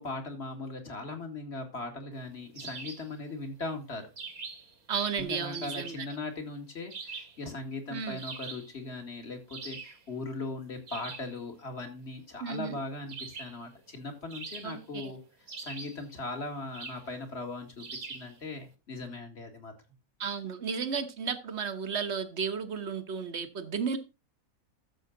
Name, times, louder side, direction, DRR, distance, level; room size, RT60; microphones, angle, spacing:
voice 1, 0.0-4.1 5.2-15.2 15.6-19.7, left 2 dB, 45° left, 5 dB, 2.4 m, -39 dB
sound 1, 2.6-3.1 4.2-4.8 5.5-6.1 6.9-7.4 8.2-8.7 9.5-10.0 10.9-11.3 13.1-13.6 14.3-15.0 15.5-16.1 16.7-17.1 17.8-18.3, right 4 dB, 75° right, 2.2 m, -42 dB
voice 2, 4.9-6.1 7.9-8.2 12.4-12.8 14.6-15.1 20.2-24.0, right 6 dB, 50° right, 10 dB, 1.4 m, -33 dB
13.0 x 7.1 x 3.9 m, 0.27 s
omnidirectional pair, 1.5 m